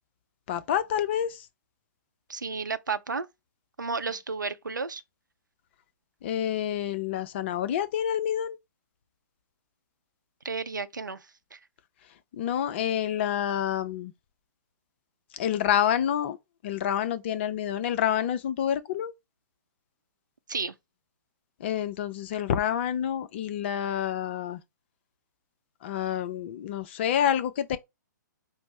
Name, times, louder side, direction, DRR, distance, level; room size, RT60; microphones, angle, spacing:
voice 1, 0.5-1.4 6.2-8.6 12.3-14.1 15.3-16.4 16.6-19.1 21.6-24.6 25.8-27.8, left 10 dB, 35° left, 0.5 m, -28 dB
voice 2, 2.3-3.3 3.8-5.0 10.4-11.2 11.5-11.6 20.5-20.7, right 4 dB, 75° right, 0.6 m, -32 dB
5.1 x 2.0 x 4.7 m
figure-of-eight pair, 120°, 10 cm